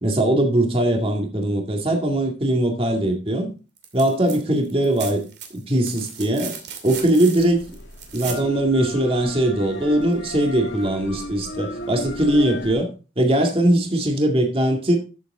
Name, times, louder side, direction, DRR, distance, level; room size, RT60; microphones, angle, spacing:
voice 1, 0.0-3.5 3.9-5.3 5.5-6.6 6.8-7.7 8.1-15.0, right 1 dB, 30° right, 2.1 m, -20 dB
sound 1, 3.8-4.4 4.6-8.5 10.1-10.2, right 7 dB, 60° right, 2.6 m, -36 dB
sound 2, 6.9-12.7, left 1 dB, 85° left, 2.1 m, -35 dB
13.0 x 7.1 x 3.7 m
head